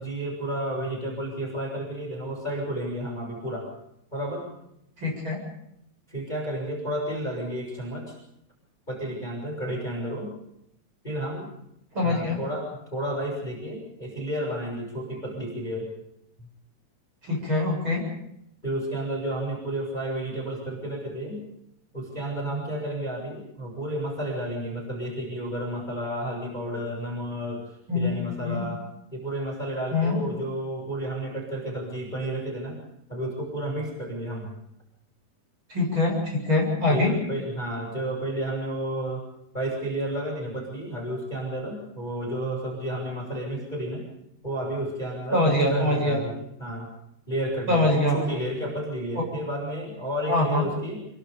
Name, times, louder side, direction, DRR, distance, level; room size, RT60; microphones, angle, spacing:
voice 1, 0.0-3.7 4.1-4.6 6.1-8.2 8.9-10.3 11.0-11.5 12.0-15.9 18.6-21.4 21.9-28.8 29.1-32.8 33.1-34.5 36.9-39.2 39.5-44.1 44.4-46.9 47.3-51.0, right 1 dB, 10° left, 0 dB, 6.5 m, -31 dB
voice 2, 5.0-5.4 11.9-12.4 17.2-18.0 27.9-28.6 29.9-30.2 35.7-37.1 45.3-46.2 47.7-48.3 50.3-50.7, left 2 dB, 30° right, 0 dB, 8.4 m, -24 dB
27.0 x 23.0 x 5.3 m, 0.78 s
omnidirectional pair, 4.6 m